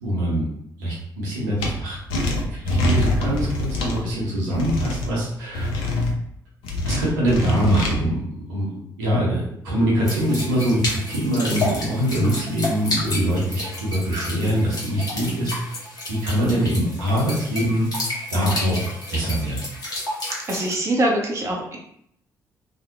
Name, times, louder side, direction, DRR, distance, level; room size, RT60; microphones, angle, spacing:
voice 1, 0.0-0.5 0.8-2.0 2.2-5.7 6.8-8.2 8.5-8.7 9.0-15.5 16.1-17.9 18.3-18.8 19.1-19.6, equal, 75° right, -5 dB, 0.7 m, -23 dB
sound 1, 1.6-1.7 2.1-4.0 4.5-5.1 5.5-6.1 6.6-7.9, left 1 dB, 65° left, 0.5 m, -24 dB
sound 2, 10.0-20.7, left 2 dB, 40° left, 1.0 m, -31 dB
voice 2, 20.5-21.8, right 1 dB, 30° right, 0 dB, 0.5 m, -23 dB
2.5 x 2.0 x 2.5 m, 0.73 s
figure-of-eight pair, 40°, 10 cm